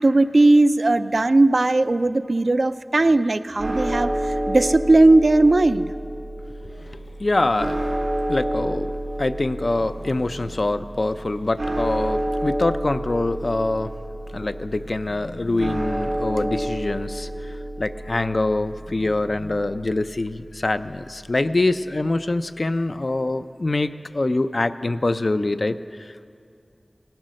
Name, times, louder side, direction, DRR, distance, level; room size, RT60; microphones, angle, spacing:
voice 1, 0.0-5.9, right 2 dB, 70° right, 11 dB, 0.4 m, -17 dB
sound 1, 3.6-21.8, right 1 dB, 85° right, 2.3 m, -30 dB
voice 2, 6.6-7.9 8.3-8.9 9.2-13.9 14.3-26.3, left 2 dB, 60° left, 11 dB, 0.4 m, -25 dB
17.0 x 10.5 x 6.3 m, 2.4 s
wide cardioid pair, 50°, 0 cm